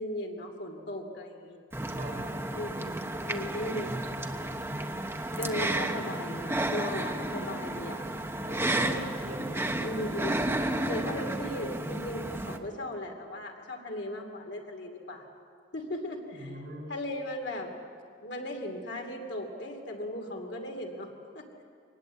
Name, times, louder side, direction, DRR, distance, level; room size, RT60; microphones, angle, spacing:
voice 1, 0.0-1.6 2.5-4.0 4.6-4.7 5.4-8.0 8.8-9.1 9.8-10.4 10.9-15.3 15.7-16.6 16.9-17.7 18.2-21.6, left 1 dB, 60° left, 3 dB, 2.7 m, -37 dB
sound 1, 1.7-12.6, right 1 dB, 10° right, 1.0 m, -32 dB
voice 2, 2.0-2.3 8.4-9.7 16.3-16.9, right 1 dB, 50° right, -1 dB, 6.1 m, -43 dB
24.0 x 19.5 x 8.3 m, 2.3 s
head